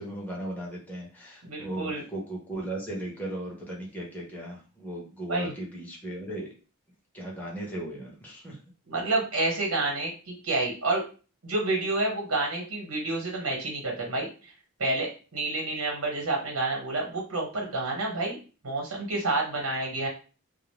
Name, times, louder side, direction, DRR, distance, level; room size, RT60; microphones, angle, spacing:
voice 1, 0.0-6.5 7.1-8.6, right 1 dB, 5° left, -3 dB, 0.9 m, -37 dB
voice 2, 1.4-2.0 5.3-5.5 8.9-11.0 11.4-14.5 14.8-18.4 18.6-20.1, right 2 dB, 75° right, 0 dB, 1.1 m, -29 dB
2.5 x 2.0 x 3.1 m, 0.35 s
head